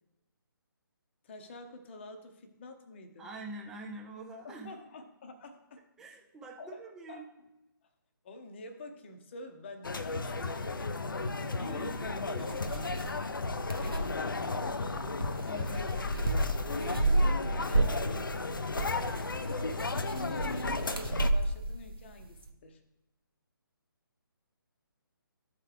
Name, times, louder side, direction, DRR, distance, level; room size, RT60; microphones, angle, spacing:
voice 1, 1.2-3.3 4.4-5.8 6.6-6.8 7.1-7.3 8.2-11.1 11.5-11.9 12.2-12.7 13.8-15.2 15.5-16.0 17.7-18.7 19.9-22.8, left 2 dB, 30° left, 7 dB, 0.8 m, -47 dB
voice 2, 3.2-4.7 6.0-7.3 11.2-12.9 15.4-15.8, right 2 dB, 5° right, -1 dB, 0.5 m, -46 dB
sound 1, 9.8-21.3, left 3 dB, 65° left, 0.5 m, -34 dB
sound 2, 10.0-22.5, right 2 dB, 80° right, 0.9 m, -34 dB
13.0 x 4.5 x 3.3 m, 0.92 s
figure-of-eight pair, 145°, 12 cm